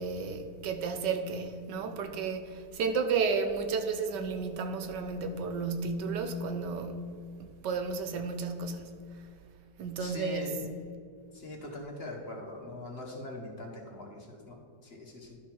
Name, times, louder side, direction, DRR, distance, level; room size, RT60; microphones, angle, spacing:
voice 1, 0.0-7.0 7.4-9.0 9.8-10.8, right 4 dB, 90° right, 1.4 m, -32 dB
voice 2, 10.0-10.6 11.3-15.4, left 2 dB, 40° left, 1.3 m, -42 dB
11.5 x 5.6 x 4.5 m
omnidirectional pair, 1.8 m